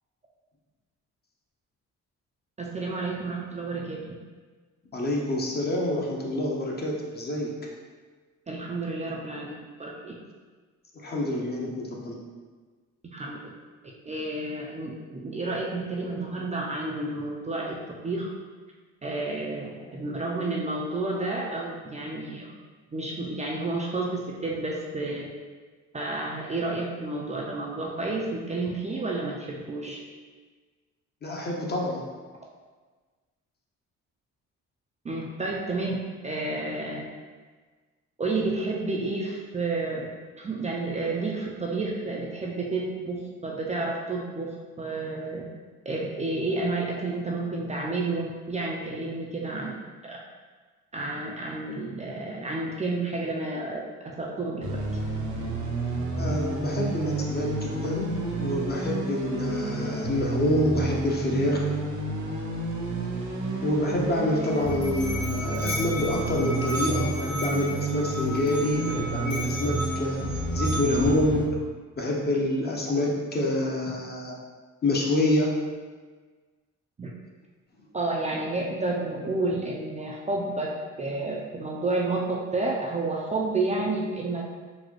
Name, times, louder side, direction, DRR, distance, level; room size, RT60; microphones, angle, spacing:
voice 1, 2.6-4.0 8.5-9.5 9.8-10.1 13.1-13.5 14.1-17.7 18.0-18.3 19.0-22.5 22.9-25.3 25.9-30.0 35.0-36.0 36.2-37.0 38.2-40.1 40.4-45.5 45.9-49.7 50.0-50.2 50.9-53.9 54.2-54.7 77.0-77.1 77.9-80.7 81.0-84.4, right 2 dB, 25° right, -3 dB, 0.4 m, -30 dB
voice 2, 4.9-7.6 10.9-12.2 31.2-32.0 56.1-61.6 63.6-70.2 70.5-71.5 72.0-74.4 74.8-75.6, left 1 dB, 35° left, -1 dB, 0.7 m, -27 dB
sound 1, 54.6-71.5, right 2 dB, 70° right, 0.8 m, -30 dB
Musical instrument, 64.3-71.2, equal, 55° left, 1.1 m, -35 dB
4.0 x 2.1 x 3.0 m, 1.4 s
cardioid pair, 90°, 30 cm